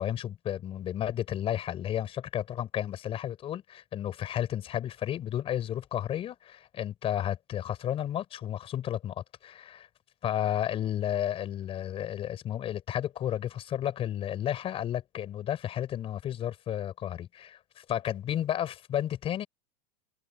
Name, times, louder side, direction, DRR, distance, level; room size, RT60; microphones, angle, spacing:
voice 1, 0.0-9.9 10.2-19.5, left 11 dB, 25° left, 5.6 m, -32 dB
supercardioid pair, 160°, 21 cm